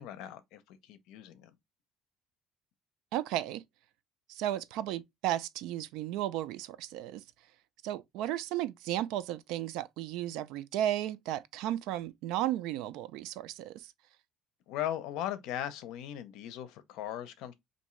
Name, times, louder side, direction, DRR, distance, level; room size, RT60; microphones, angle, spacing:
voice 1, 0.0-1.5 14.7-17.5, left 11 dB, 75° left, 0.6 m, -38 dB
voice 2, 3.1-3.6 4.3-7.2 7.8-13.9, right 13 dB, 75° right, 0.3 m, -34 dB
3.5 x 2.6 x 3.1 m
cardioid pair, 160°, 0 cm